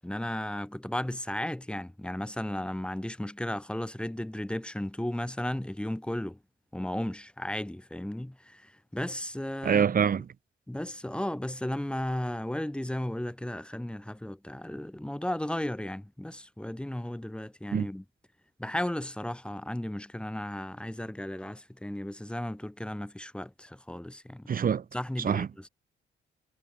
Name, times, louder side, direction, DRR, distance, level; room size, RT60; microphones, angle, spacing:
voice 1, 0.0-6.4 6.7-9.9 10.7-18.0 18.6-24.5 24.9-25.7, left 1 dB, 5° left, 1.8 m, -35 dB
voice 2, 9.6-10.3 17.7-17.9 24.5-24.8 25.2-25.5, right 7 dB, 45° right, 1.7 m, -25 dB
cardioid pair, 90°, 20 cm